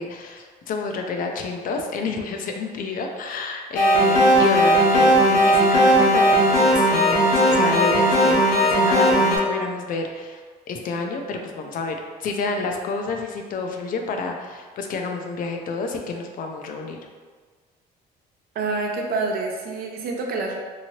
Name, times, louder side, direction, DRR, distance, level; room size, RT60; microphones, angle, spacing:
voice 1, 0.0-10.4 10.7-17.0, left 4 dB, 55° left, 3 dB, 0.4 m, -29 dB
sound 1, 3.8-9.4, equal, 80° left, 1.1 m, -17 dB
voice 2, 18.5-20.6, right 3 dB, 65° right, 1 dB, 0.6 m, -27 dB
2.9 x 2.7 x 2.9 m, 1.5 s
cardioid pair, 110°, 17 cm